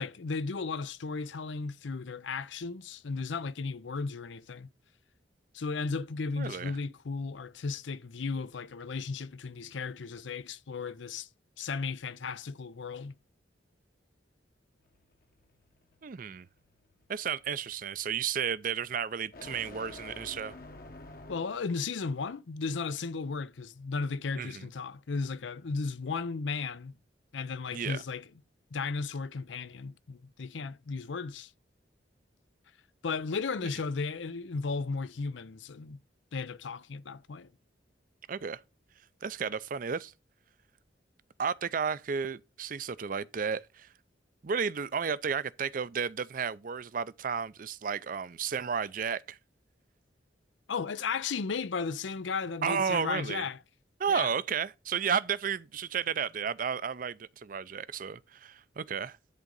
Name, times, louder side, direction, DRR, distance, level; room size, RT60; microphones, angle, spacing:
voice 1, 0.0-4.7 5.5-11.3 11.6-13.2 21.3-26.9 27.3-28.3 28.7-31.5 33.0-36.0 36.3-37.5 50.7-53.6 54.1-54.3, left 4 dB, 85° left, 0.6 m, -35 dB
voice 2, 6.4-6.7 16.0-16.5 17.1-20.6 24.4-24.7 27.7-28.0 38.3-38.6 39.2-40.1 41.4-43.9 44.4-49.4 52.6-53.4 54.0-59.2, right 6 dB, 45° right, 0.4 m, -32 dB
sound 1, 14.8-21.8, left 2 dB, 50° left, 1.1 m, -50 dB
11.0 x 3.8 x 5.3 m
head